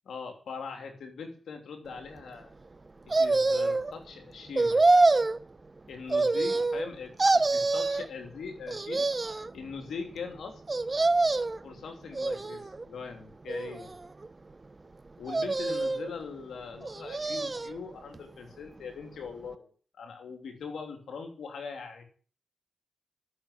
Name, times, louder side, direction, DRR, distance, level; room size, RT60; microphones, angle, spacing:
voice 1, 0.0-2.5 3.1-4.8 5.9-7.1 7.5-9.1 9.5-10.6 11.6-13.9 15.2-19.7 20.0-22.0, left 5 dB, 80° left, 4 dB, 3.1 m, -41 dB
sound 1, 3.1-3.9 4.6-5.4 6.1-6.9 7.2-8.1 8.7-9.5 10.7-11.6 12.1-12.8 13.5-14.3 15.3-16.1 16.8-17.8 18.1-18.2, right 3 dB, 35° right, 0.9 m, -26 dB
13.5 x 7.4 x 8.4 m, 0.42 s
supercardioid pair, 40°, 0 cm